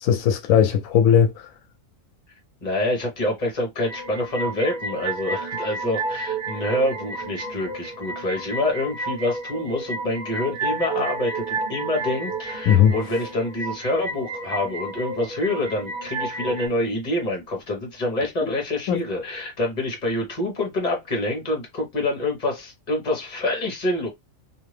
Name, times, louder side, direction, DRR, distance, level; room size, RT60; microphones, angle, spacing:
voice 1, 0.0-1.3 12.7-12.9 18.4-18.5 18.9-19.0, left 8 dB, 90° left, 1.0 m, -18 dB
voice 2, 2.6-24.1, left 1 dB, 35° left, 1.2 m, -26 dB
sound 1, 3.8-16.7, right 3 dB, 40° right, 1.3 m, -31 dB
2.7 x 2.5 x 3.2 m
omnidirectional pair, 1.4 m